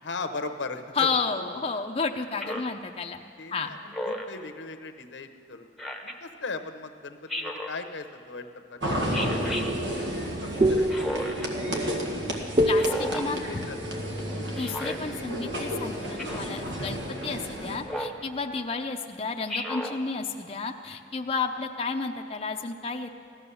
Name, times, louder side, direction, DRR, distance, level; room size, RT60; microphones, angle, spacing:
voice 1, 0.0-1.1 1.5-1.8 2.4-2.6 3.4-5.7 6.0-8.8 9.2-10.0 10.4-11.5 13.3-14.0, left 3 dB, 80° left, 7 dB, 0.9 m, -39 dB
voice 2, 1.0-3.2 3.5-3.7 12.7-13.6 14.6-23.1, left 4 dB, 30° left, 3 dB, 0.6 m, -31 dB
Speech synthesizer, 2.4-2.8 3.9-4.4 5.8-6.2 7.3-7.8 9.1-9.7 10.9-11.5 12.7-13.3 14.6-15.0 16.2-16.5 17.9-18.2 19.5-20.0, left 1 dB, ahead, 1.0 m, -33 dB
sound 1, 8.8-17.8, equal, 80° right, 1.8 m, -32 dB
sound 2, 9.5-15.2, right 1 dB, 30° right, 0.4 m, -28 dB
16.0 x 12.5 x 7.0 m, 2.4 s
head